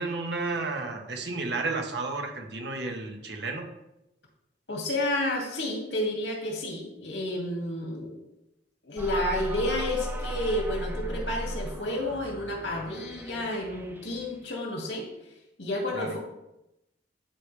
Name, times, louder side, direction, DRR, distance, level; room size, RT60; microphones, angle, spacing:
voice 1, 0.0-3.7 15.9-16.2, right 3 dB, 70° right, 2 dB, 1.4 m, -32 dB
voice 2, 4.7-8.1 8.8-15.1 15.6-16.2, left 1 dB, 90° left, -1 dB, 2.6 m, -30 dB
sound 1, 9.0-14.4, right 1 dB, 10° right, 0.6 m, -36 dB
12.0 x 4.9 x 3.5 m, 0.88 s
head